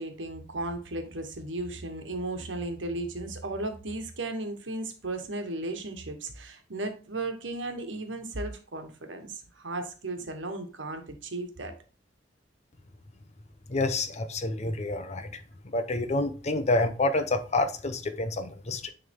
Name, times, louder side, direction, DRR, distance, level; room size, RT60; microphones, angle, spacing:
voice 1, 0.0-11.7, right 2 dB, 90° right, 1.3 m, -35 dB
voice 2, 13.7-15.3 15.7-18.9, left 2 dB, 40° left, 0.8 m, -28 dB
9.5 x 3.4 x 3.6 m
head